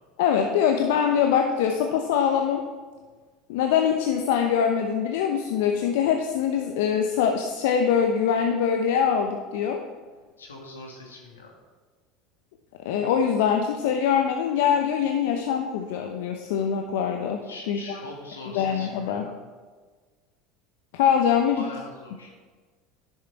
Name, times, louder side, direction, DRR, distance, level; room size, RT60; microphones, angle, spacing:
voice 1, 0.2-2.6 3.5-9.8 12.8-17.4 17.7-18.0 18.5-19.2 20.9-21.6, left 8 dB, 70° left, 4 dB, 0.7 m, -23 dB
voice 2, 10.4-11.6 17.4-19.4 21.5-22.3, left 2 dB, 90° left, 0 dB, 1.9 m, -42 dB
11.0 x 6.7 x 4.5 m, 1.4 s
hypercardioid pair, 80°, 0 cm